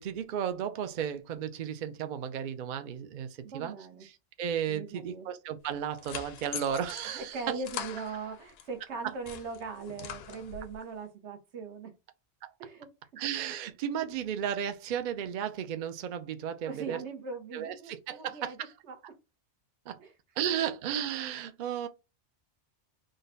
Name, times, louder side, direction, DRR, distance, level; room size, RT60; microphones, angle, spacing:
voice 1, 0.0-3.3 3.5-3.7 4.0-7.6 12.4-12.5 13.2-17.0 17.5-18.7 19.9-20.0 20.4-21.9, right 9 dB, 60° right, 0.5 m, -34 dB
voice 2, 3.4-4.0 4.7-5.3 7.0-11.9 12.6-13.2 16.6-18.6 18.8-19.0 20.0-20.1, right 4 dB, 80° right, 1.2 m, -40 dB
sound 1, 5.6-8.7 9.1-10.8, left 9 dB, 70° left, 0.8 m, -43 dB
3.9 x 2.2 x 3.8 m
omnidirectional pair, 1.2 m